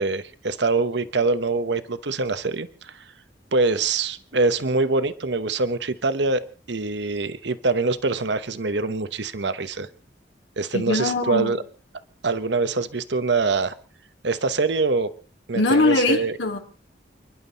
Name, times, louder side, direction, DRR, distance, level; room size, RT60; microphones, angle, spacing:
voice 1, 0.0-3.0 3.5-6.4 6.7-9.9 10.6-11.6 12.2-13.7 14.2-15.1 15.5-16.4, right 3 dB, 70° right, 12 dB, 1.0 m, -24 dB
voice 2, 10.7-11.5 15.5-16.6, left 2 dB, 85° left, 3 dB, 3.5 m, -21 dB
30.0 x 11.0 x 4.1 m, 0.39 s
head